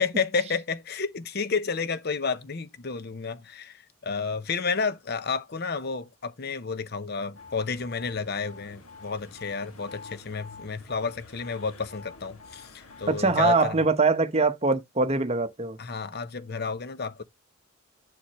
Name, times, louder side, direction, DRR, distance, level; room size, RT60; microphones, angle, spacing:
voice 1, 0.0-13.8 15.8-17.2, left 5 dB, 50° left, 0.7 m, -31 dB
sound 1, 7.3-13.6, left 4 dB, 85° left, 2.0 m, -47 dB
voice 2, 13.1-15.8, right 3 dB, 30° right, 0.9 m, -23 dB
7.6 x 7.2 x 3.0 m
head